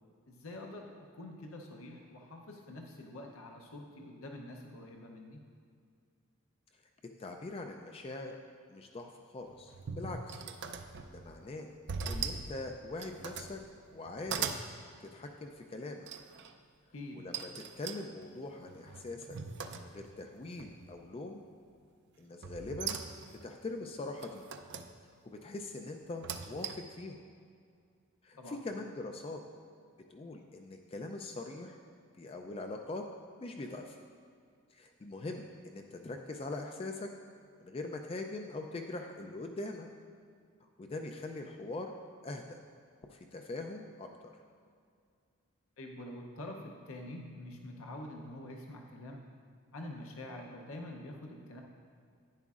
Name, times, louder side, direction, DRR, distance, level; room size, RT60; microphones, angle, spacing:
voice 1, 0.3-5.4 16.9-17.2 28.4-28.6 45.8-49.3 49.7-51.6, left 1 dB, 65° left, 2 dB, 0.7 m, -46 dB
voice 2, 7.2-8.4 8.7-10.3 11.1-11.7 12.1-13.6 13.9-14.5 15.0-16.1 17.1-17.5 17.8-19.4 19.7-21.4 22.2-23.0 23.4-24.4 25.3-27.2 28.2-29.4 30.1-31.8 32.2-33.0 33.4-34.0 34.7-37.1 37.6-39.9 40.8-41.9 42.2-42.6 43.1-44.3, left 2 dB, 25° left, 4 dB, 0.3 m, -42 dB
sound 1, 9.5-11.3 11.9-12.5 12.9-13.6 14.0-14.7 16.1-16.5 17.3-20.2 20.6-21.1 22.4-23.4 24.2-24.9 26.0-27.0, right 6 dB, 50° right, 0.4 m, -40 dB
10.5 x 9.4 x 2.4 m, 2.3 s
head